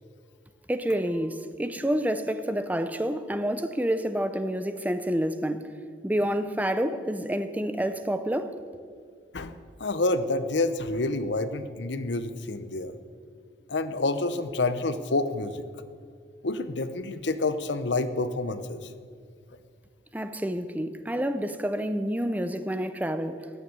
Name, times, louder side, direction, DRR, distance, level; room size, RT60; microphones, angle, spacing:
voice 1, 0.7-5.7 6.0-8.6 20.1-23.5, equal, 10° right, 0.6 m, -28 dB
voice 2, 9.8-12.9 13.7-15.6 16.4-18.9, left 2 dB, 75° left, 0.8 m, -28 dB
15.0 x 7.2 x 9.6 m
head